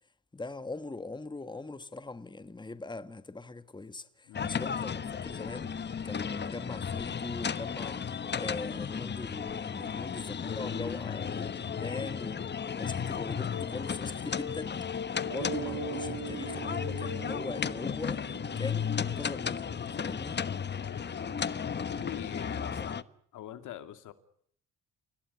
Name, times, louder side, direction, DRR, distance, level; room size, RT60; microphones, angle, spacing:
voice 1, 0.3-12.4 12.8-14.8 15.2-20.4, left 3 dB, 15° left, 1.7 m, -41 dB
voice 2, 4.3-4.7 9.8-10.1 11.1-11.3 15.2-15.4 20.8-21.5 21.9-23.0 23.3-24.1, left 12 dB, 80° left, 2.6 m, -45 dB
sound 1, 4.3-23.0, left 7 dB, 35° left, 1.2 m, -34 dB
sound 2, 13.5-13.8 14.2-18.0, left 8 dB, 65° left, 4.0 m, -42 dB
Mallet percussion, 15.3-19.7, right 14 dB, 85° right, 2.1 m, -42 dB
29.5 x 17.5 x 9.7 m
cardioid pair, 90°, 30 cm